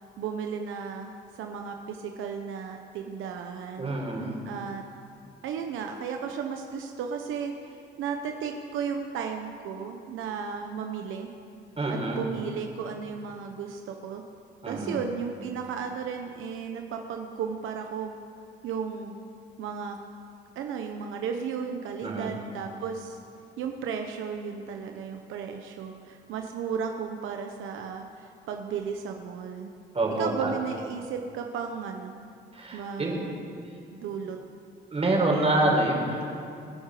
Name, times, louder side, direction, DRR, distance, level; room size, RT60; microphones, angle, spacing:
voice 1, 0.2-3.9 4.5-4.8 5.4-11.3 11.9-14.2 14.6-18.2 18.6-19.2 19.6-20.0 20.5-23.2 23.6-29.7 30.2-32.1 32.7-33.4 33.9-34.4, right 6 dB, 85° right, 4 dB, 1.0 m, -34 dB
voice 2, 3.8-4.4 11.8-12.2 14.6-15.0 22.0-22.3 29.9-30.5 32.5-33.2 34.9-36.3, right 2 dB, 30° right, -1 dB, 4.3 m, -26 dB
26.0 x 9.8 x 5.0 m, 2.5 s
cardioid pair, 90°, 20 cm